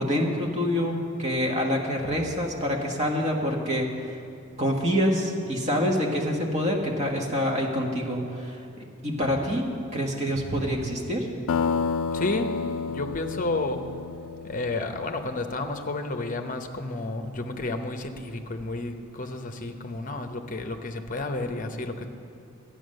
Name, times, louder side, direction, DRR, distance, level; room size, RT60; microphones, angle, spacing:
voice 1, 0.0-4.2 4.6-8.6 9.0-11.3, equal, 30° right, 0 dB, 1.4 m, -26 dB
sound 1, 11.5-15.8, left 5 dB, 60° left, 0.3 m, -30 dB
voice 2, 12.1-12.5 12.9-13.8 14.4-22.1, left 2 dB, 35° left, 6 dB, 0.8 m, -31 dB
13.0 x 9.0 x 6.5 m, 2.5 s
head